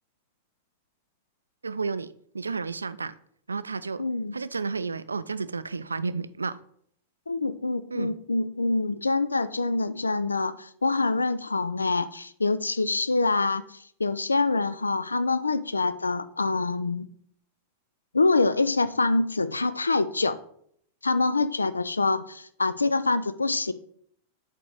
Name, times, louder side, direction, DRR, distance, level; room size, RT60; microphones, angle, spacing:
voice 1, 1.6-3.1 3.5-4.0 4.3-6.6 7.9-8.2, right 4 dB, 75° right, 0.3 m, -32 dB
voice 2, 4.0-4.4 7.3-17.1 18.1-20.4 21.0-23.7, left 3 dB, 80° left, 0.4 m, -25 dB
7.7 x 4.6 x 3.9 m
figure-of-eight pair, 90°, 0 cm